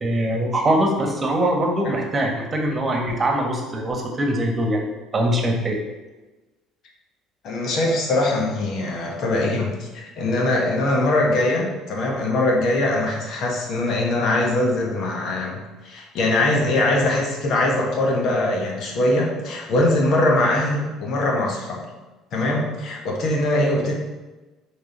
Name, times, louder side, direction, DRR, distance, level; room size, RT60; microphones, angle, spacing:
voice 1, 0.0-5.8, right 1 dB, 30° right, 2 dB, 1.4 m, -22 dB
voice 2, 7.4-21.8 22.3-23.9, left 1 dB, 55° left, 0 dB, 1.3 m, -22 dB
6.8 x 3.9 x 3.9 m, 1.2 s
hypercardioid pair, 60°, 0 cm